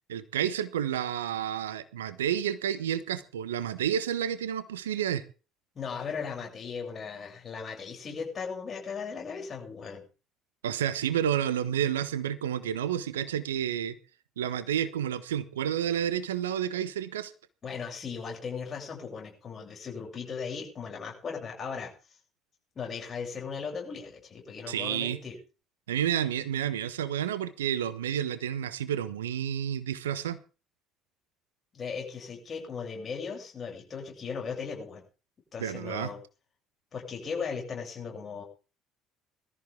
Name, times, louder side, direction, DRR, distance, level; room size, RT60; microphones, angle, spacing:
voice 1, 0.1-5.2 10.6-13.9 14.4-17.3 24.7-25.2 25.9-30.4 35.6-36.1, right 9 dB, 80° right, 14 dB, 1.1 m, -30 dB
voice 2, 5.7-10.0 17.6-21.9 22.8-25.4 31.7-35.0 35.5-36.2 36.9-38.4, left 5 dB, 40° left, 1 dB, 7.7 m, -37 dB
21.0 x 14.0 x 3.7 m, 0.35 s
figure-of-eight pair, 55°, 0 cm